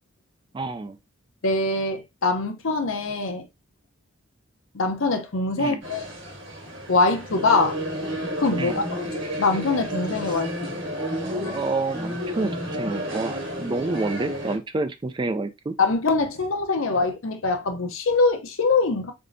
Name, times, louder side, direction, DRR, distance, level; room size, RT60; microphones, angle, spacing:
voice 1, 0.5-1.0 5.6-5.8 8.6-8.8 10.3-10.4 11.2-15.7, right 3 dB, 20° right, 0.3 m, -29 dB
voice 2, 1.4-3.5 4.7-6.0 6.9-7.8 8.4-9.1 9.4-10.5 15.8-19.1, left 3 dB, 70° left, 0.7 m, -23 dB
sound 1, 5.8-14.6, equal, 55° right, 1.7 m, -31 dB
3.9 x 3.6 x 2.6 m
head